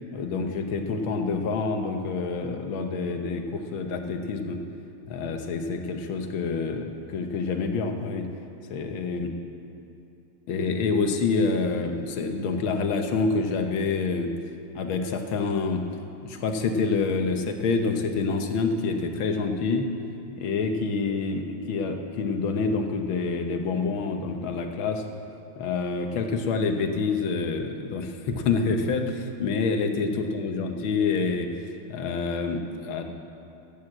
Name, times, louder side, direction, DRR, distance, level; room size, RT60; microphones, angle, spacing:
voice 1, 0.1-4.6 5.1-8.3 8.7-9.3 10.5-14.3 14.8-15.8 16.2-19.9 20.3-25.0 25.6-31.5 31.9-33.0, left 4 dB, 90° left, 5 dB, 1.8 m, -27 dB
14.5 x 9.1 x 7.8 m, 2.7 s
omnidirectional pair, 2.1 m